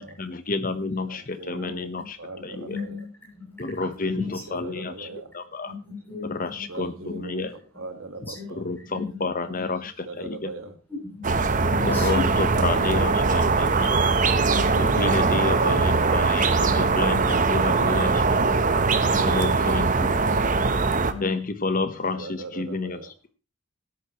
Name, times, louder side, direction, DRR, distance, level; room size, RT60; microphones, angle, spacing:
voice 1, 0.0-2.2 2.4-2.8 3.6-5.1 5.3-5.7 6.2-7.5 8.2-10.5 11.8-14.0 14.8-18.2 19.1-20.4 21.2-23.1, left 3 dB, 40° left, 10 dB, 1.0 m, -30 dB
voice 2, 1.1-1.9 2.2-3.0 4.5-5.3 6.7-7.4 7.8-8.6 10.0-10.7 12.5-13.3 20.3-20.5 22.2-23.0, right 2 dB, 70° right, 8 dB, 1.6 m, -39 dB
voice 3, 2.6-3.0 3.3-3.7 4.1-4.3 5.7-6.3 7.0-7.2 8.3-8.4 8.9-9.2 11.0-11.2 11.5-12.2 13.0-13.2 14.4-15.2 17.8-17.9 20.9-21.2, left 5 dB, 10° left, -4 dB, 8.0 m, -35 dB
sound 1, 11.2-21.1, right 4 dB, 35° right, 0.8 m, -21 dB
17.5 x 10.0 x 3.0 m, 0.32 s
head